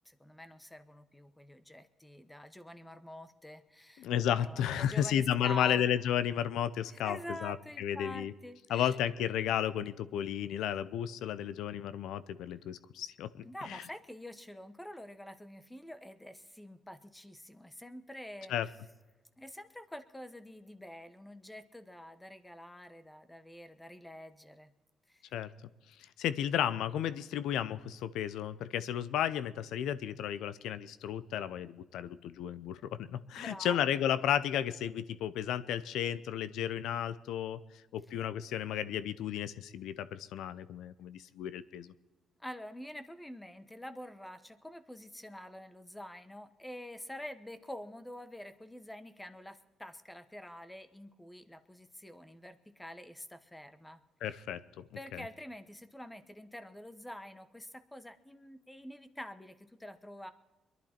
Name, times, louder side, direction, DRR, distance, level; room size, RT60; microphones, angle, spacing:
voice 1, 0.0-5.8 6.9-9.0 13.4-18.7 19.4-24.7 25.1-25.3 33.4-33.8 42.4-54.0 54.3-54.4 55.0-60.3, left 1 dB, 10° left, 12 dB, 1.0 m, -47 dB
voice 2, 4.0-8.3 8.7-13.8 18.5-18.7 25.3-25.5 26.2-37.6 37.9-41.9 54.2-54.8 55.1-55.2, left 10 dB, 85° left, 16 dB, 0.6 m, -33 dB
22.5 x 11.0 x 4.4 m, 1.1 s
cardioid pair, 90°, 0 cm